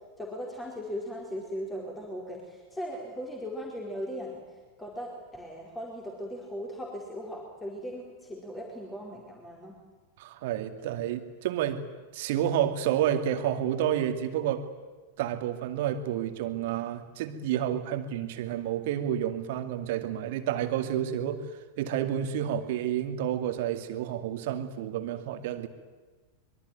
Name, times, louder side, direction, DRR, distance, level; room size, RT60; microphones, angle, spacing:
voice 1, 0.2-4.4 4.8-9.7, equal, 10° left, -1 dB, 4.7 m, -38 dB
voice 2, 10.2-11.8 12.1-14.7 15.2-25.7, right 10 dB, 50° right, 8 dB, 2.3 m, -30 dB
25.0 x 23.0 x 9.4 m, 1.3 s
figure-of-eight pair, 90°, 0 cm